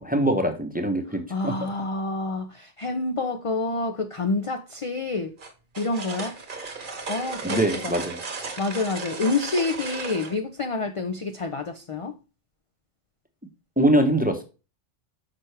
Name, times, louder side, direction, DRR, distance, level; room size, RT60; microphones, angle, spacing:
voice 1, 0.0-1.6 7.4-8.2 13.8-14.4, right 1 dB, 10° right, 0.7 m, -23 dB
voice 2, 1.3-5.3 5.8-6.4 6.7-8.0 8.6-12.1, left 3 dB, 50° left, 0.4 m, -28 dB
sound 1, 5.4-10.4, right 4 dB, 45° right, 1.2 m, -35 dB
6.1 x 5.5 x 3.2 m
omnidirectional pair, 1.2 m